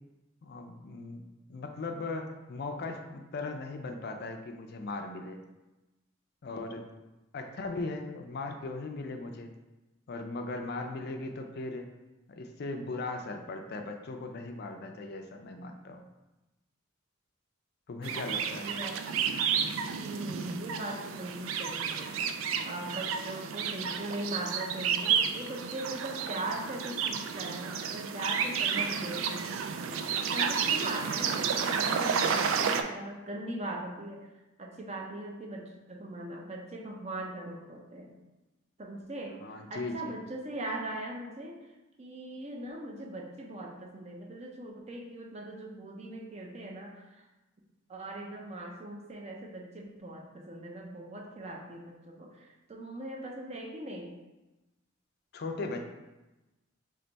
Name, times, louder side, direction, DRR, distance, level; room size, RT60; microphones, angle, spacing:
voice 1, 0.4-5.4 6.4-6.9 7.3-9.5 10.1-11.9 12.3-16.0 17.9-18.7 39.4-40.1 55.3-55.8, left 3 dB, 55° left, 5 dB, 0.4 m, -38 dB
sound 1, 18.0-32.8, right 7 dB, 85° right, 0.3 m, -31 dB
voice 2, 18.6-19.0 20.0-22.1 22.4-34.3 34.6-38.1 38.8-39.4 39.7-41.6 42.0-47.2 47.9-54.1, right 1 dB, 35° right, 1 dB, 0.6 m, -40 dB
3.4 x 3.3 x 3.9 m, 1.1 s
head